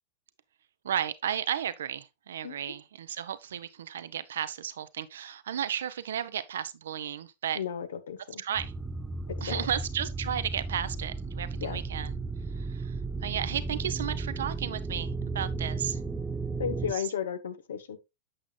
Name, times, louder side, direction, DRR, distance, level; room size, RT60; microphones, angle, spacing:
voice 1, 0.8-7.6 8.4-8.7 9.4-12.2 12.6-12.9 13.2-16.0 16.8-17.1, right 9 dB, 65° right, 0.7 m, -34 dB
voice 2, 7.6-8.4 9.5-9.6 11.6-11.8 16.6-18.0, left 8 dB, 65° left, 1.0 m, -34 dB
sound 1, 8.6-16.9, right 3 dB, 10° right, 0.5 m, -34 dB
8.6 x 7.2 x 2.3 m
figure-of-eight pair, 90°, 0 cm